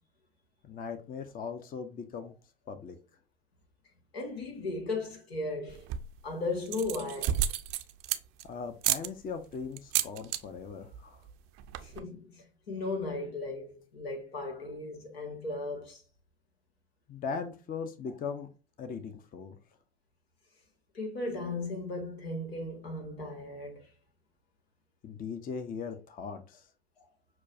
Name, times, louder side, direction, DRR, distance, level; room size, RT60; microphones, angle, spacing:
voice 1, 0.6-2.3 2.7-3.0 8.5-11.2 17.1-18.5 18.8-19.6 25.0-26.6, left 5 dB, 30° left, 0.6 m, -39 dB
voice 2, 4.1-5.9 6.2-7.4 11.8-16.0 20.9-23.9, left 2 dB, 85° left, 1.4 m, -36 dB
sound 1, 5.7-6.2 6.6-8.4 8.8-9.1 9.8-10.4 10.7-11.0 11.3-11.4 11.6-12.0, right 11 dB, 50° right, 0.5 m, -31 dB
6.0 x 2.3 x 2.5 m
hypercardioid pair, 85°, 30 cm